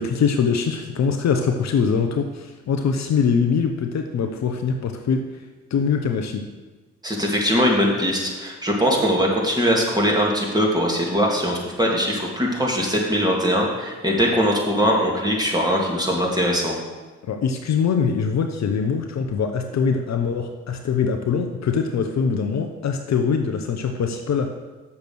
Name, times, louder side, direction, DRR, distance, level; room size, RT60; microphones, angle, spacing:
voice 1, 0.0-5.2 5.7-6.5 17.3-24.5, left 6 dB, 55° left, 5 dB, 0.9 m, -23 dB
voice 2, 7.0-16.8, equal, 10° right, -2 dB, 2.9 m, -21 dB
7.0 x 6.7 x 6.2 m, 1.3 s
hypercardioid pair, 45°, 33 cm